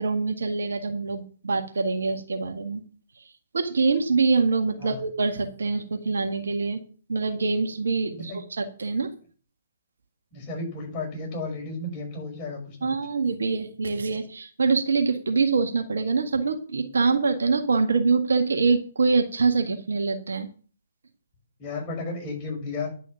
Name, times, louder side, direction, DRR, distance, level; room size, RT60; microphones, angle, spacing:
voice 1, 0.0-2.8 3.5-6.8 7.1-9.1 12.8-20.5, right 4 dB, 65° right, 5 dB, 1.8 m, -24 dB
voice 2, 10.3-12.9 21.6-22.9, left 3 dB, 25° left, -1 dB, 6.1 m, -33 dB
10.5 x 6.2 x 7.2 m, 0.41 s
figure-of-eight pair, 130°, 0 cm